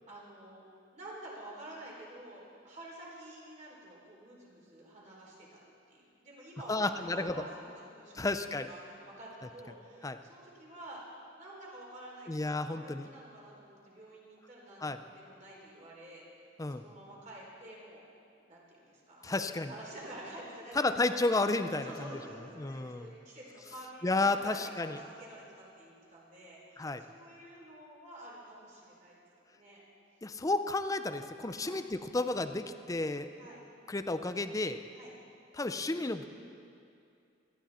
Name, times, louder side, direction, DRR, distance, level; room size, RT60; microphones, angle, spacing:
voice 1, 0.1-0.7 0.9-5.6 5.9-8.3 8.7-11.0 11.4-16.2 16.7-18.1 18.4-21.2 21.8-29.2 29.5-29.8 31.5-31.8 33.3-33.6 34.9-35.1, right 1 dB, 40° right, -5 dB, 4.1 m, -49 dB
voice 2, 6.7-7.4 8.1-8.7 10.0-10.2 12.3-13.1 14.8-15.0 16.6-16.8 19.2-19.7 20.8-22.1 22.6-23.1 24.0-25.0 26.8-27.0 30.2-33.3 33.9-34.8 35.5-36.3, left 2 dB, 20° left, 9 dB, 0.5 m, -32 dB
18.5 x 14.0 x 4.3 m, 2.5 s
head